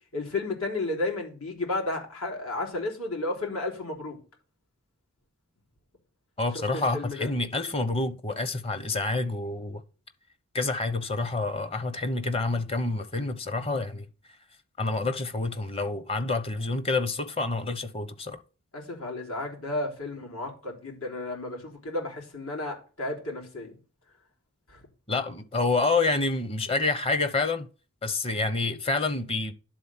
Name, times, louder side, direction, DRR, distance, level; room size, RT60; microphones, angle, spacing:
voice 1, 0.1-4.2 6.5-7.3 18.7-23.8 24.7-24.9, left 2 dB, 80° left, 3.7 m, -33 dB
voice 2, 6.4-9.8 10.5-14.0 14.8-18.4 25.1-27.7 28.0-29.5, left 3 dB, 25° left, 0.9 m, -28 dB
11.0 x 4.0 x 7.3 m
head